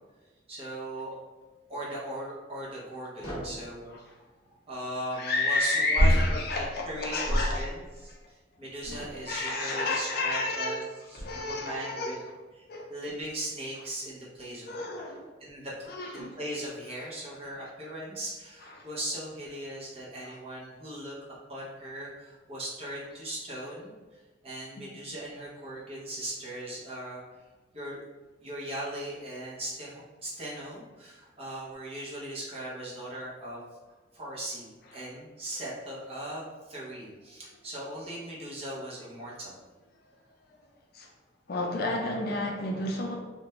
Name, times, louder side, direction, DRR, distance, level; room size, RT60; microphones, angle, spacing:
voice 1, 0.5-1.2 1.7-4.3 4.7-10.8 11.1-12.2 12.6-14.8 15.4-15.9 16.1-21.1 21.5-27.2 27.7-28.0 28.4-33.6 34.1-39.6, right 1 dB, 35° right, -6 dB, 0.8 m, -39 dB
sound 1, 3.2-3.7 6.0-7.9 8.8-9.3 10.2-10.3 11.2-11.6, equal, 30° left, 0.9 m, -28 dB
voice 2, 5.1-7.7 9.3-10.8 11.1-12.1 12.7-13.0 14.7-15.3 15.9-16.4 18.6-18.9 20.2-20.4 34.9-35.0 40.3-40.7 40.9-41.1 41.5-43.2, left 2 dB, 55° left, 1 dB, 0.4 m, -31 dB
2.5 x 2.1 x 3.0 m, 1.3 s
head